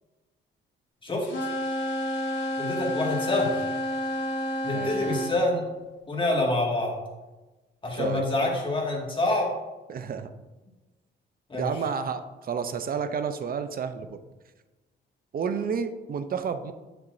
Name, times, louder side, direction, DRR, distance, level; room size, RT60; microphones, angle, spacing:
sound 1, 1.2-5.4, left 1 dB, 70° left, 1.7 m, -30 dB
voice 1, 2.6-3.6 4.6-5.6 6.1-6.9 7.8-9.5 11.5-11.7, left 2 dB, 25° left, -2 dB, 2.0 m, -26 dB
voice 2, 4.7-5.1 7.9-8.2 9.9-10.3 11.6-14.2 15.3-16.7, right 6 dB, 45° right, 10 dB, 0.6 m, -31 dB
7.3 x 6.8 x 2.7 m, 1.1 s
cardioid pair, 90°, 20 cm